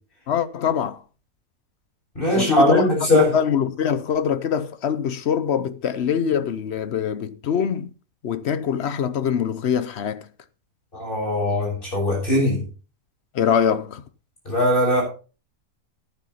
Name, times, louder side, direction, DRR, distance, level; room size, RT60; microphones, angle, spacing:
voice 1, 0.3-1.0 2.3-2.9 3.3-7.9 8.2-10.2 13.3-14.0, left 8 dB, 55° left, 0.8 m, -23 dB
voice 2, 2.2-3.3 10.9-12.6 14.5-15.0, left 1 dB, 35° left, 7.3 m, -20 dB
14.5 x 9.3 x 4.2 m
omnidirectional pair, 1.7 m